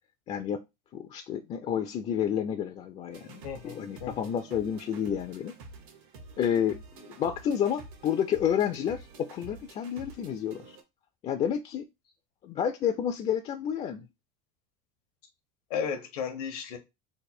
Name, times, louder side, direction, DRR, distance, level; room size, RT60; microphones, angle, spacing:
voice 1, 0.3-0.6 0.9-5.5 6.4-10.8 11.2-11.9 12.4-14.1, left 9 dB, 35° left, 0.4 m, -30 dB
sound 1, 3.1-10.8, right 3 dB, 70° right, 1.1 m, -49 dB
voice 2, 3.4-4.3 15.7-16.8, left 7 dB, 80° left, 0.9 m, -34 dB
3.3 x 2.1 x 4.3 m
supercardioid pair, 115°, 19 cm